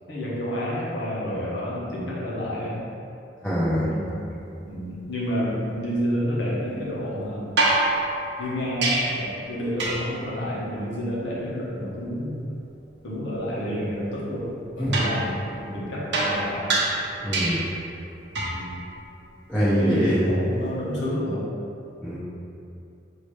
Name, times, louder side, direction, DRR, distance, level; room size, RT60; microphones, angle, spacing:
voice 1, 0.1-2.8 3.8-4.2 4.6-7.5 8.4-12.5 13.0-16.8 18.5-18.7 19.8-21.5, equal, 80° left, -6 dB, 1.1 m, -29 dB
voice 2, 3.4-4.0 14.8-15.0 17.2-17.6 19.5-20.4 22.0-22.2, equal, 10° left, -11 dB, 0.7 m, -23 dB
sound 1, 7.6-9.3 9.8-10.2 14.9-17.8 18.3-18.7 20.7-20.8, right 2 dB, 70° right, 0.8 m, -26 dB
5.5 x 2.9 x 3.3 m, 2.7 s
head